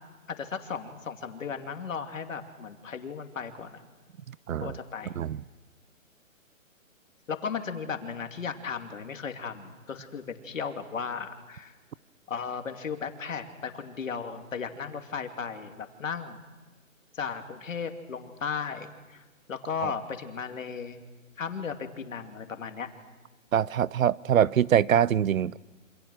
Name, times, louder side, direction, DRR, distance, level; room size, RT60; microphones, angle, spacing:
voice 1, 0.3-3.8 4.6-5.2 7.3-11.7 12.3-16.4 17.1-21.0 21.4-22.9, left 6 dB, 70° left, 2.7 m, -36 dB
voice 2, 4.5-4.8 5.2-5.4 19.8-19.9 23.5-25.6, right 9 dB, 75° right, 0.7 m, -24 dB
27.5 x 26.5 x 6.3 m
hypercardioid pair, 180°, 41 cm